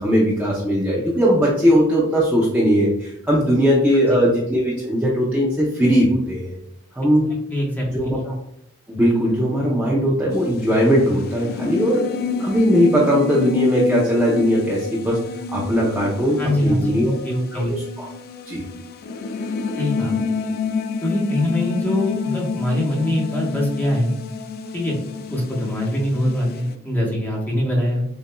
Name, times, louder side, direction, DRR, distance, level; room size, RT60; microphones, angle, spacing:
voice 1, 0.0-6.6 6.9-7.3 7.9-8.4 8.9-12.1 12.4-15.2 15.5-17.1 17.5-17.6 18.0-18.1 18.5-18.6, equal, 10° right, -6 dB, 0.6 m, -19 dB
voice 2, 7.5-8.2 16.4-17.8 19.8-20.1 21.0-24.1 24.7-24.9 25.3-28.1, left 1 dB, 10° left, -3 dB, 1.1 m, -23 dB
sound 1, 10.3-26.7, left 5 dB, 45° left, 0.3 m, -29 dB
6.7 x 2.6 x 2.2 m, 0.78 s
head